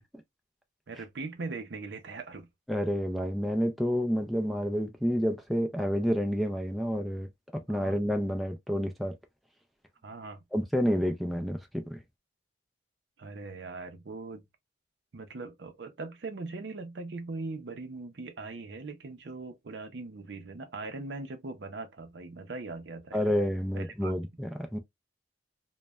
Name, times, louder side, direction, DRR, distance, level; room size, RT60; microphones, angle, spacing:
voice 1, 0.9-2.5 7.7-8.0 10.0-10.4 13.2-14.4 15.1-23.3 23.7-24.1, right 3 dB, 70° right, 0.6 m, -40 dB
voice 2, 2.7-9.1 10.5-12.0 23.1-24.8, equal, ahead, 0.3 m, -29 dB
3.0 x 2.1 x 2.3 m
head